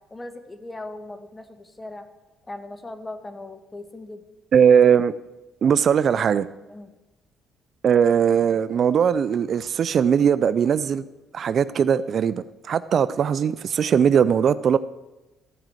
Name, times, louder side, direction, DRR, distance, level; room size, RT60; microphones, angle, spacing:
voice 1, 0.1-2.1 2.5-4.2 6.7-6.9, left 2 dB, 15° left, 9 dB, 1.0 m, -38 dB
voice 2, 4.5-5.2 5.6-6.5 7.8-11.0 11.3-14.8, right 7 dB, 50° right, 15 dB, 0.3 m, -19 dB
13.5 x 5.1 x 7.6 m, 1.1 s
cardioid pair, 105°, 0 cm